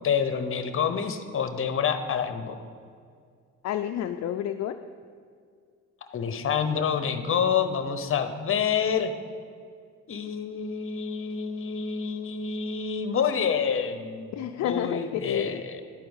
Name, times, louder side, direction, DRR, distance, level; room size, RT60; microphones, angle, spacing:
voice 1, 0.0-2.6 6.1-9.1 10.1-15.8, left 7 dB, 45° left, 9 dB, 0.9 m, -28 dB
voice 2, 3.6-4.8 14.3-15.0 15.3-15.6, left 10 dB, 60° left, 7 dB, 0.4 m, -29 dB
11.0 x 4.6 x 7.1 m, 2.1 s
cardioid pair, 90°, 30 cm